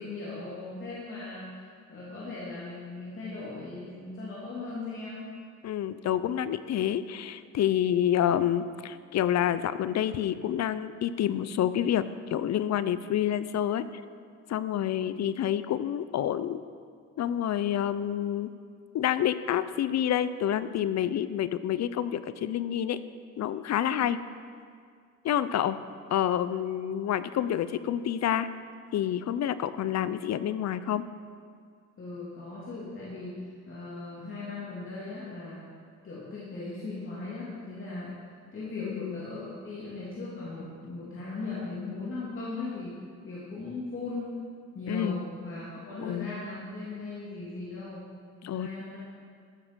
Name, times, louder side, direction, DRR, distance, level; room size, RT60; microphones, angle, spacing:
voice 1, 0.0-5.3 32.0-35.6 36.0-38.1 38.5-43.0 43.2-44.4 44.7-48.0 48.4-49.0, left 3 dB, 40° left, -8 dB, 3.2 m, -38 dB
voice 2, 5.6-13.8 14.5-16.6 17.2-18.5 18.9-23.0 23.4-24.2 25.2-25.8 26.1-28.5 28.9-31.1 38.8-39.3 44.9-45.2 46.0-46.4 48.4-48.7, left 10 dB, 60° left, 14 dB, 0.6 m, -28 dB
14.0 x 7.3 x 6.3 m, 2.1 s
cardioid pair, 90°, 30 cm